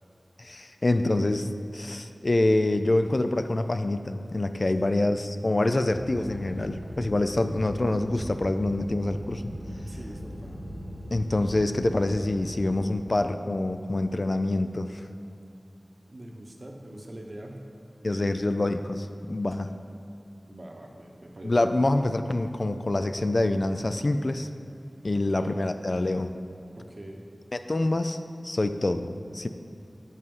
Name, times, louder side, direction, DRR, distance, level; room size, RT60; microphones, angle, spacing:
voice 1, 0.4-9.5 11.1-15.0 18.0-19.7 21.4-24.5 25.0-26.3 27.5-28.2 28.4-29.5, left 2 dB, 50° left, 9 dB, 0.3 m, -26 dB
sound 1, 5.9-12.8, equal, 70° right, 1.3 m, -39 dB
voice 2, 9.9-10.7 16.1-17.6 18.0-18.4 20.5-21.7 25.1-25.6 26.8-27.2, right 1 dB, 50° right, 2 dB, 0.9 m, -43 dB
6.6 x 5.4 x 5.4 m, 2.7 s
wide cardioid pair, 60°, 0 cm